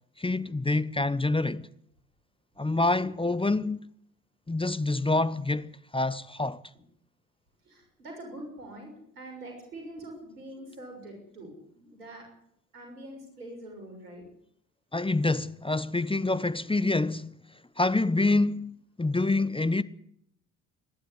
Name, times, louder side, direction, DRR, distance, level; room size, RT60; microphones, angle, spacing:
voice 1, 0.2-1.7 2.6-3.9 4.5-6.6 14.9-17.3 17.8-19.8, left 2 dB, 10° left, 1.0 m, -27 dB
voice 2, 7.6-12.3 12.7-14.3, right 1 dB, 90° right, 6.6 m, -44 dB
26.0 x 11.5 x 9.8 m
hypercardioid pair, 50°, 44 cm